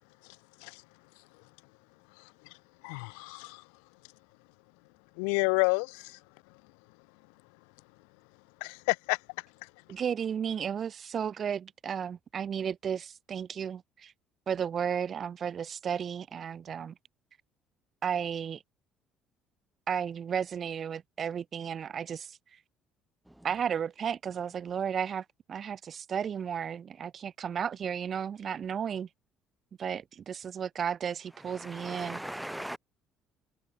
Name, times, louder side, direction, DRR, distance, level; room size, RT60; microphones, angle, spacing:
voice 1, 2.8-3.6 5.2-6.2 8.6-9.2, left 40 dB or more, 70° left, 0.7 m, -29 dB
voice 2, 9.9-14.1 14.5-16.9 18.0-18.6 19.9-22.4 23.4-29.1 29.8-32.2, right 8 dB, 45° right, 7.2 m, -33 dB
voice 3, 31.7-32.8, right 1 dB, 5° right, 1.1 m, -38 dB
figure-of-eight pair, 55°, 0 cm